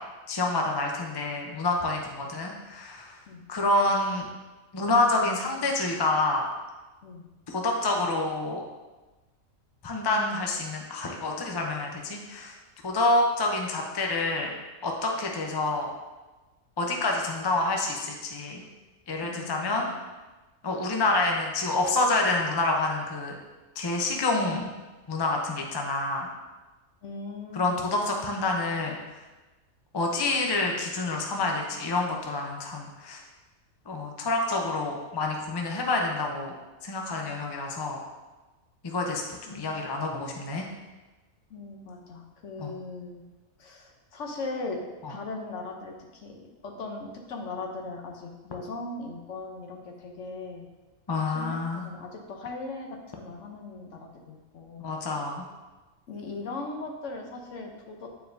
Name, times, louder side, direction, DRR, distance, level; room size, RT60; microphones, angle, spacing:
voice 1, 0.3-3.2 3.5-4.3 4.7-6.5 7.5-8.6 9.8-12.5 12.8-14.5 14.8-15.9 16.8-18.6 19.1-19.9 20.6-23.3 23.8-24.7 25.1-26.3 27.5-29.0 29.9-33.2 33.9-36.5 36.8-38.0 38.8-39.2 39.5-40.6 42.6-42.8 45.0-45.2 51.1-51.9 54.8-55.4, left 2 dB, 30° left, 1 dB, 0.5 m, -27 dB
voice 2, 19.2-20.0 27.0-27.9 37.1-37.4 39.5-39.7 41.5-43.2 43.6-44.8 45.1-45.9 46.2-50.7 51.3-54.9 56.1-58.1, left 3 dB, 65° left, 2 dB, 1.1 m, -39 dB
8.8 x 4.6 x 2.6 m, 1.2 s
omnidirectional pair, 1.4 m